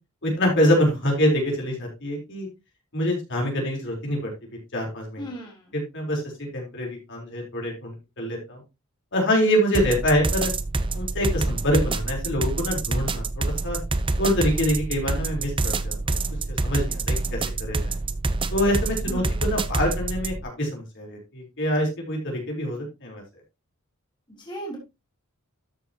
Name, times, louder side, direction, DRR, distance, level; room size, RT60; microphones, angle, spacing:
voice 1, 0.2-2.5 2.9-4.3 4.7-5.2 5.7-6.2 6.5-8.6 9.1-10.5 10.9-13.8 14.2-16.2 16.6-17.8 18.5-23.2, equal, 55° left, -1 dB, 3.9 m, -25 dB
voice 2, 5.2-5.7 19.1-19.4 24.3-24.8, right 1 dB, 20° left, -2 dB, 3.5 m, -36 dB
sound 1, 9.7-20.4, right 3 dB, 25° right, 0.6 m, -27 dB
13.0 x 6.8 x 2.9 m, 0.25 s
head